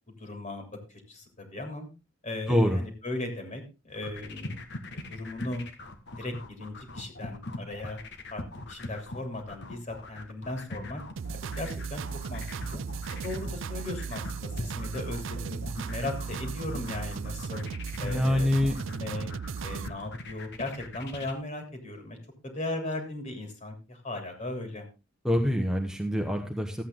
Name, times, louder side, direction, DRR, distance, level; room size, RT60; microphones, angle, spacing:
voice 1, 0.2-0.6 0.9-1.9 2.2-4.6 4.9-5.6 6.2-8.0 8.3-8.4 8.7-11.0 11.6-12.8 13.1-15.6 15.8-17.7 18.0-19.3 19.6-22.2 22.4-24.9, left 2 dB, 40° left, 5 dB, 3.1 m, -37 dB
voice 2, 2.5-2.8 18.0-18.8 25.2-26.8, left 1 dB, 5° right, 2 dB, 1.1 m, -25 dB
sound 1, 3.9-21.3, left 2 dB, 60° left, 1.6 m, -41 dB
sound 2, 11.2-19.9, right 5 dB, 75° right, 0.4 m, -36 dB
13.5 x 8.5 x 3.8 m, 0.28 s
head